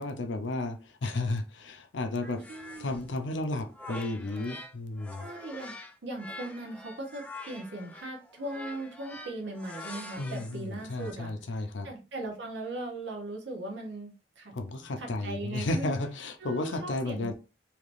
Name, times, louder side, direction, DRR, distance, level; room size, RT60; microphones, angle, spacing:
voice 1, 0.0-2.4 2.8-5.3 10.2-11.9 14.5-17.3, left 2 dB, 75° left, 0.6 m, -33 dB
sound 1, 2.2-4.7 5.0-11.1, left 2 dB, 5° left, 0.4 m, -45 dB
voice 2, 2.2-3.0 5.2-5.8 6.0-11.3 11.8-14.5 15.0-16.0 16.4-17.3, right 2 dB, 70° right, 0.8 m, -39 dB
3.3 x 2.8 x 2.5 m
head